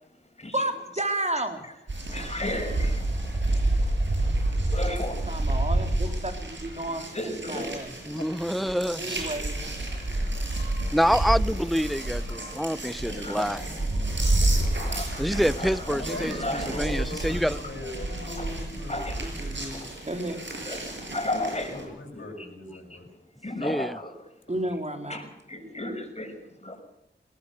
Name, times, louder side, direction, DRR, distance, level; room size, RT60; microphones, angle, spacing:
voice 1, 0.5-1.6 4.9-5.0 5.3-6.3 6.6-7.0 7.4-7.9 9.0-9.6 19.2-20.4 24.5-25.3, right 1 dB, 35° right, 3.7 m, -31 dB
sound 1, 1.9-21.8, right 2 dB, 70° right, 6.9 m, -29 dB
voice 2, 2.1-2.9 3.2-5.2 7.1-7.8 9.9-10.2 11.3-11.4 12.5-12.6 13.0-13.7 14.4-17.0 18.4-18.5 18.9-19.3 19.7-19.8 20.7-22.5 22.9-23.0 23.4-24.1 25.1-26.8, left 1 dB, 35° left, 6.3 m, -35 dB
voice 3, 8.1-9.2 10.9-13.6 15.2-17.6 23.6-24.0, equal, ahead, 0.7 m, -27 dB
voice 4, 9.0-11.0 11.7-11.8 13.1-14.6 16.0-19.2 21.7-23.1 24.6-24.7, left 2 dB, 85° left, 7.5 m, -42 dB
20.0 x 19.0 x 6.8 m
wide cardioid pair, 50°, 20 cm